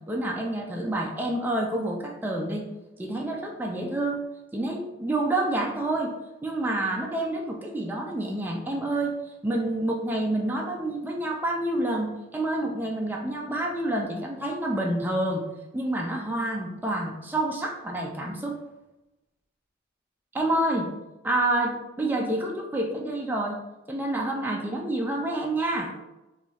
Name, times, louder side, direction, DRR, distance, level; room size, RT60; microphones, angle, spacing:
voice 1, 0.1-2.7 3.0-4.2 4.5-6.1 6.4-9.1 9.4-15.4 15.7-18.6 20.3-20.9 21.2-23.6 23.9-25.9, right 1 dB, 10° right, -1 dB, 0.3 m, -28 dB
2.9 x 2.3 x 4.1 m, 0.99 s
head